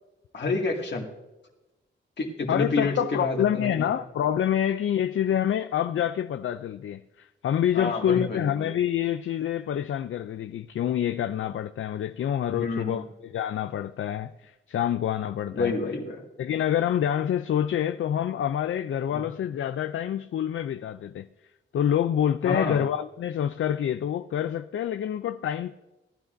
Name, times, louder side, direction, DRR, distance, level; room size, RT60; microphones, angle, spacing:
voice 1, 0.3-1.0 2.2-3.9 7.7-8.7 12.5-13.0 15.5-16.2 19.1-19.2 22.4-22.8, left 3 dB, 60° left, 2.1 m, -29 dB
voice 2, 2.5-13.0 13.3-15.7 16.4-21.3 21.7-25.7, left 10 dB, 80° left, 0.4 m, -27 dB
18.0 x 12.5 x 2.6 m
wide cardioid pair, 165°, 21 cm